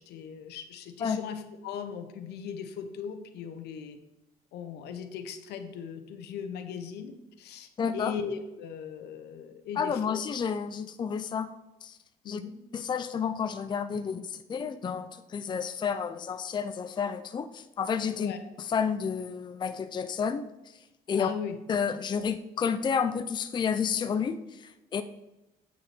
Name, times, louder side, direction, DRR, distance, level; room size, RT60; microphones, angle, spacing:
voice 1, 0.0-4.0 4.5-10.2 12.2-12.6 18.2-18.4 21.2-21.6, left 7 dB, 80° left, 8 dB, 1.1 m, -38 dB
voice 2, 7.8-8.1 9.8-11.5 11.8-12.0 12.3-12.4 12.7-18.3 18.6-20.8 21.1-21.3 21.7-25.0, left 6 dB, 25° left, 10 dB, 0.5 m, -30 dB
8.7 x 6.3 x 4.3 m, 0.96 s
cardioid pair, 110°, 17 cm